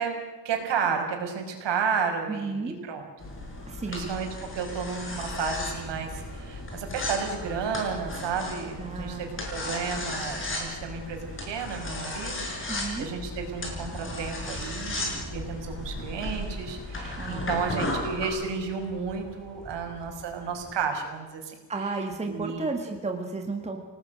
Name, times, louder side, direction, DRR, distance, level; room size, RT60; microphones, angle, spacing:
voice 1, 0.0-3.1 3.9-4.3 4.5-21.6 22.2-22.7, right 6 dB, 70° right, 3 dB, 5.5 m, -32 dB
voice 2, 2.3-2.8 3.7-4.1 8.8-9.3 12.7-13.1 17.2-17.8 21.7-23.8, right 3 dB, 15° right, 4 dB, 1.8 m, -33 dB
sound 1, 3.2-18.3, left 2 dB, 25° left, 6.3 m, -35 dB
sound 2, 4.9-20.7, right 1 dB, ahead, 4.5 m, -48 dB
29.0 x 19.0 x 6.4 m, 1.3 s
cardioid pair, 175°, 44 cm